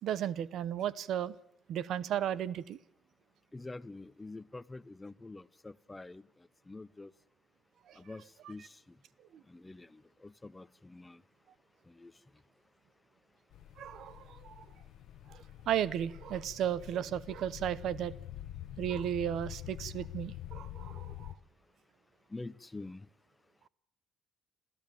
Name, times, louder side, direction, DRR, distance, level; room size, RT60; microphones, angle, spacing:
voice 1, 0.0-1.3 1.7-2.8 7.9-8.0 13.8-14.6 15.3-18.1 18.8-21.3, right 10 dB, 75° right, 19 dB, 0.9 m, -35 dB
voice 2, 3.5-7.1 8.0-9.0 9.5-11.2 11.8-12.1 22.3-23.1, left 2 dB, 15° left, 18 dB, 0.8 m, -47 dB
sound 1, 13.5-21.4, left 12 dB, 90° left, 1.0 m, -46 dB
27.0 x 14.5 x 9.1 m, 0.79 s
cardioid pair, 90°, 0 cm